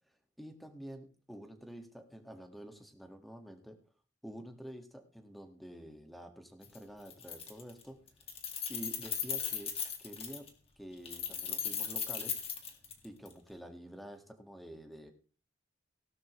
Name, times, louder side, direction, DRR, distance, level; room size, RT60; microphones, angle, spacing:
voice 1, 0.4-3.8 4.2-8.0 8.7-9.7 10.0-10.5 10.8-12.4 13.0-15.1, equal, ahead, 5 dB, 1.8 m, -48 dB
Keys jangling, 6.6-6.8 7.1-7.8 8.1-10.5 11.0-13.3, left 7 dB, 30° left, 2.2 m, -37 dB
17.5 x 12.0 x 3.2 m, 0.39 s
head